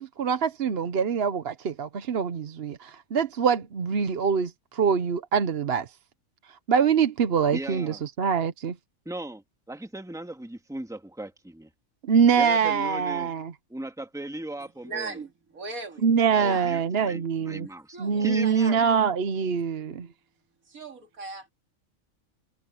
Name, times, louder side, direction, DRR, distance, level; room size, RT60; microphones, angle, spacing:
voice 1, 0.0-5.9 6.7-8.7 12.1-13.5 16.0-17.7 18.0-20.1, right 6 dB, 50° right, 1.0 m, -24 dB
voice 2, 7.5-8.0 9.1-11.7 12.4-13.3 13.7-15.2 16.3-18.8, right 1 dB, ahead, 1.8 m, -37 dB
voice 3, 14.6-16.0 16.5-16.7 17.9-18.7 20.7-21.5, right 3 dB, 80° right, 2.9 m, -39 dB
omnidirectional pair, 1.4 m